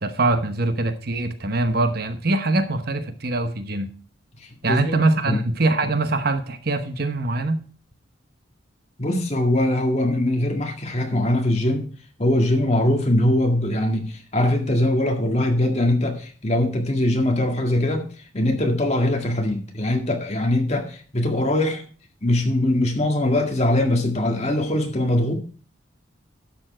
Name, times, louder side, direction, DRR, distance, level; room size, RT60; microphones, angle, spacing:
voice 1, 0.0-3.9 4.6-7.6, right 2 dB, 50° right, 1.0 m, -23 dB
voice 2, 9.0-11.9 12.2-18.1 18.3-21.8 22.2-25.3, left 1 dB, 35° left, 1.9 m, -21 dB
12.0 x 7.2 x 4.4 m
head